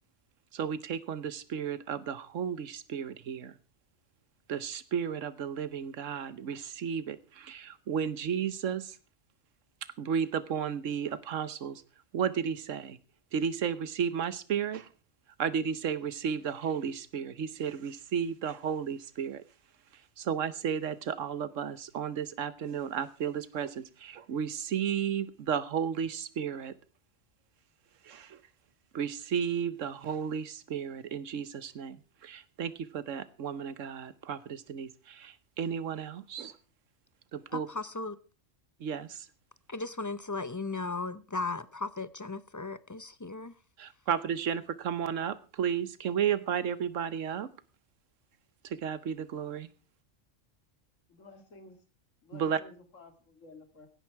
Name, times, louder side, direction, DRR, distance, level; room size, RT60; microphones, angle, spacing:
voice 1, 0.5-3.5 4.5-9.0 10.0-11.8 12.1-13.0 13.3-14.9 15.4-19.4 20.2-26.7 28.0-28.4 28.9-36.6 37.3-37.7 38.8-39.3 43.8-47.5 48.6-49.7 52.3-52.6, right 7 dB, 80° right, 1.2 m, -33 dB
voice 2, 37.5-38.2 39.7-43.5, left 3 dB, 30° left, 0.3 m, -36 dB
voice 3, 51.1-51.8 52.2-53.9, left 3 dB, 75° left, 2.5 m, -53 dB
16.0 x 10.5 x 4.5 m
omnidirectional pair, 1.3 m